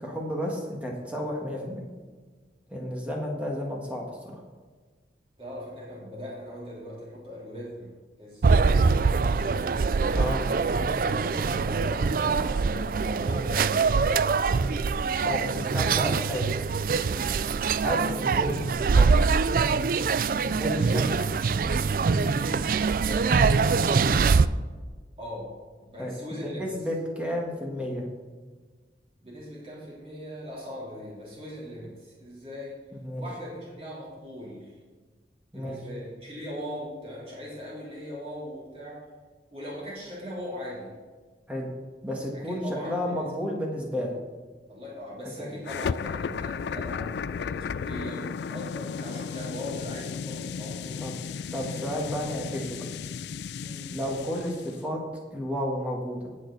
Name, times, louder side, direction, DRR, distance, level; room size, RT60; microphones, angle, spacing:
voice 1, 0.0-1.9 2.7-4.4 10.1-10.5 10.8-11.2 14.6-14.7 15.2-16.5 17.8-19.1 20.4-21.2 23.9-24.1 26.0-26.1 26.4-28.0 32.9-33.2 35.5-35.8 41.5-41.7 42.0-44.2 45.4-45.6 51.0-51.2 51.5-52.8 53.9-55.0 55.3-56.3, equal, 5° right, -1 dB, 1.7 m, -32 dB
voice 2, 5.4-9.8 11.3-14.3 17.2-17.9 22.9-23.5 25.2-26.7 29.2-32.8 33.2-34.8 35.5-39.0 39.5-40.9 42.3-43.3 44.7-51.1 53.6-53.9, equal, 30° right, -7 dB, 3.6 m, -40 dB
sound 1, 8.4-24.5, right 4 dB, 50° right, 0.4 m, -24 dB
sound 2, 45.6-54.8, left 6 dB, 70° left, 0.3 m, -34 dB
18.0 x 6.4 x 4.1 m, 1.4 s
head